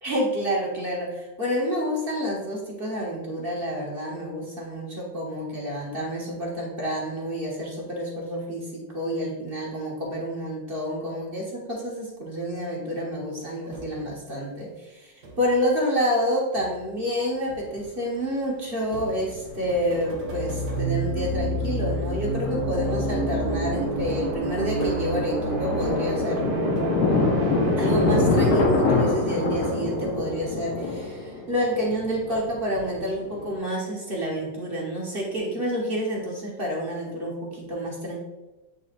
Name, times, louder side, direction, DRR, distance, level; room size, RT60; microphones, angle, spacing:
voice 1, 0.0-26.5 27.8-38.2, equal, 35° right, -4 dB, 1.1 m, -29 dB
sound 1, 13.7-14.2 15.2-15.7 16.6-17.1 18.9-27.4 27.7-30.8, right 2 dB, 60° right, 1.4 m, -40 dB
Thunder, 17.5-17.6 18.9-19.7 20.0-20.1 20.5-20.8 21.2-33.6, left 3 dB, 80° left, 2.0 m, -26 dB
sound 2, 20.2-31.8, right 2 dB, 75° right, 2.0 m, -29 dB
8.0 x 4.7 x 2.5 m, 1.1 s
omnidirectional pair, 2.3 m